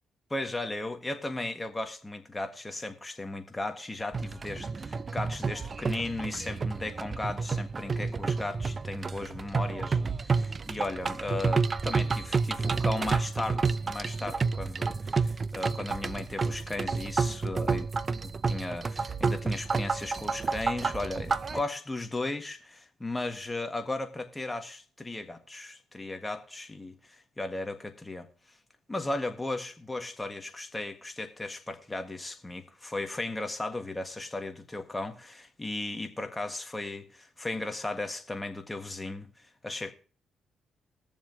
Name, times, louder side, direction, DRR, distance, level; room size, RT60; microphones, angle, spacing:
voice 1, 0.3-28.3 28.9-39.3 39.6-39.9, left 2 dB, 15° left, 1.6 m, -36 dB
sound 1, 4.1-21.6, right 4 dB, 35° right, 0.5 m, -30 dB
21.0 x 7.2 x 2.9 m
cardioid pair, 90°, 0 cm